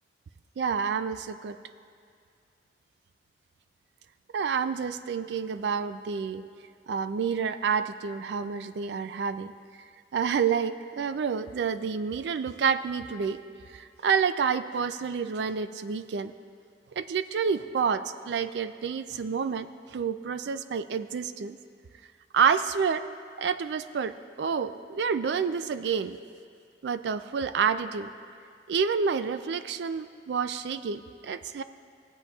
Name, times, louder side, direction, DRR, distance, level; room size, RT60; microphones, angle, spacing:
voice 1, 0.6-1.6 4.3-6.4 6.9-9.5 10.1-13.4 14.0-16.3 17.0-21.6 22.3-23.0 23.4-24.1 24.4-26.2 26.8-28.1 28.7-31.6, right 6 dB, 70° right, 12 dB, 0.4 m, -28 dB
19.0 x 8.0 x 2.4 m, 2.3 s
head